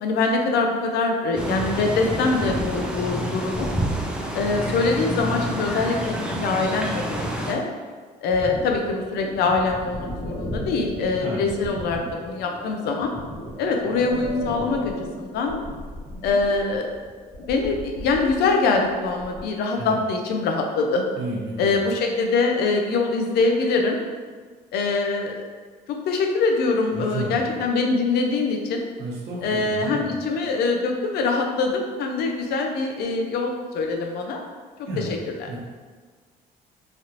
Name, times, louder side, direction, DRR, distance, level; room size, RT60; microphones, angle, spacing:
voice 1, 0.0-3.7 4.3-7.6 8.2-13.1 13.6-14.9 15.2-15.6 16.2-16.8 17.4-21.0 21.6-24.0 24.7-25.4 26.1-28.8 29.4-34.4 34.8-35.1 35.4-35.5, left 3 dB, 75° left, 2 dB, 0.5 m, -23 dB
sound 1, 1.4-7.5, equal, 5° right, 0.4 m, -28 dB
sound 2, 8.3-19.5, left 1 dB, 35° left, 0.9 m, -36 dB
voice 2, 21.1-21.8 26.9-27.6 29.0-30.1 34.9-35.2 35.5-35.6, right 2 dB, 75° right, -4 dB, 0.9 m, -32 dB
3.2 x 2.5 x 2.8 m, 1.6 s
cardioid pair, 110°, 17 cm